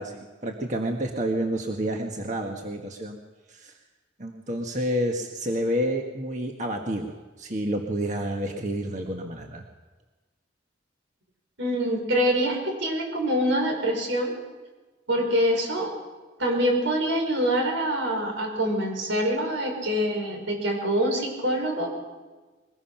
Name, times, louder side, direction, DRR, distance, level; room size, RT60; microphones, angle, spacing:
voice 1, 0.0-3.2 3.5-3.7 4.2-9.6, equal, 40° right, 2 dB, 1.5 m, -29 dB
voice 2, 11.6-14.3 15.1-15.9 16.4-21.9, equal, 85° right, 2 dB, 6.1 m, -25 dB
22.0 x 20.5 x 5.9 m, 1.3 s
head